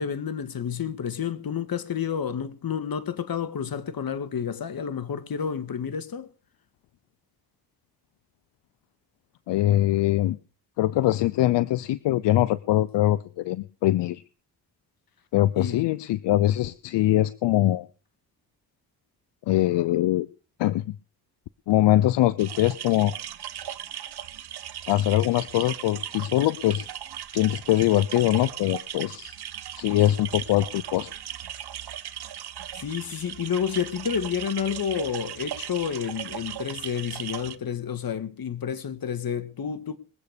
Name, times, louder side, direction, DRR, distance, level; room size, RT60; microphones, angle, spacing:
voice 1, 0.0-6.3 15.6-15.8 32.8-40.0, left 7 dB, 55° left, 1.8 m, -30 dB
voice 2, 9.5-10.4 10.8-14.2 15.3-17.9 19.5-20.3 20.6-21.0 21.7-23.1 24.9-26.9 27.3-29.4 29.8-31.1, left 14 dB, 80° left, 0.7 m, -22 dB
sound 1, 22.4-37.6, right 10 dB, 65° right, 1.2 m, -37 dB
22.0 x 8.2 x 5.1 m
supercardioid pair, 55°, 42 cm